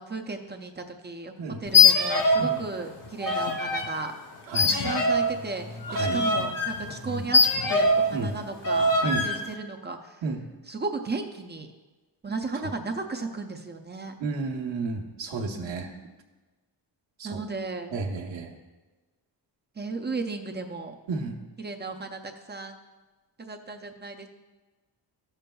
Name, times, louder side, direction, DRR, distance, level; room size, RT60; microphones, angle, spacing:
voice 1, 0.0-1.3 1.6-4.1 4.6-7.4 7.7-10.2 10.7-11.7 12.2-14.1 17.2-17.9 19.8-20.9 21.6-22.8 23.4-24.3, right 3 dB, 25° right, 5 dB, 0.4 m, -35 dB
sound 1, 1.7-2.6 2.8-3.9 4.5-8.1 8.6-9.4, left 3 dB, 45° left, 0.8 m, -22 dB
voice 2, 5.9-6.2 7.0-7.2 8.1-8.4 9.0-9.3 10.2-10.5 14.2-15.9 17.2-17.4 17.9-18.5 21.1-21.4, right 3 dB, 70° right, 1 dB, 1.1 m, -31 dB
13.0 x 6.8 x 2.3 m, 1.2 s
wide cardioid pair, 170°, 45 cm